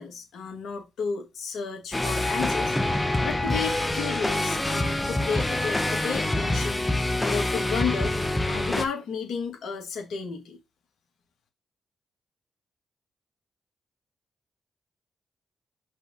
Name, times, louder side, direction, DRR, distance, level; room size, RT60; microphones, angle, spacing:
voice 1, 0.0-6.9 7.2-8.1 8.5-10.6, left 6 dB, 75° left, 2.7 m, -32 dB
sound 1, 1.9-8.8, left 1 dB, 15° left, 1.4 m, -26 dB
5.5 x 4.1 x 5.7 m
hypercardioid pair, 45°, 0 cm